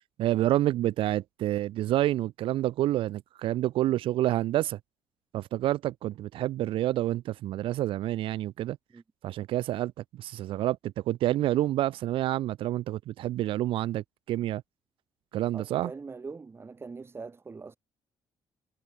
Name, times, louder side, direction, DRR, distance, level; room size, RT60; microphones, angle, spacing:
voice 1, 0.2-4.8 5.3-8.8 9.2-9.9 10.2-10.8 11.1-14.6 15.3-15.9, right 14 dB, 80° right, 0.9 m, -28 dB
voice 2, 15.5-17.8, right 4 dB, 25° right, 7.2 m, -42 dB
cardioid pair, 115°, 9 cm